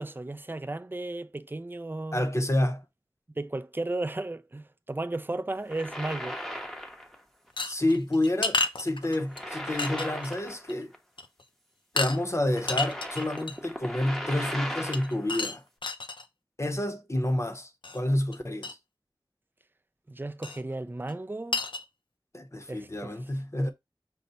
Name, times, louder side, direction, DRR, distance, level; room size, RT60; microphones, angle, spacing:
voice 1, 0.0-2.3 3.3-6.4 20.1-21.6 22.7-23.2, right 2 dB, 25° right, 0.4 m, -34 dB
voice 2, 2.1-2.8 7.7-10.9 11.9-15.6 16.6-18.8 22.3-23.7, left 1 dB, 35° left, 0.7 m, -29 dB
sound 1, 5.6-7.2 7.5-7.7 9.0-11.0 11.2-11.3 12.2-15.3, equal, 5° left, 0.8 m, -38 dB
sound 2, 7.6-9.4 9.8-10.4 10.7-10.8 11.2-11.4 12.0-12.2 12.6-13.7 14.9-16.2 17.8-18.0 18.3-18.4 18.6-18.7 20.4-20.6 21.1-21.2 21.5-21.8, left 3 dB, 75° left, 0.5 m, -31 dB
5.5 x 2.2 x 3.9 m
wide cardioid pair, 45°, 8 cm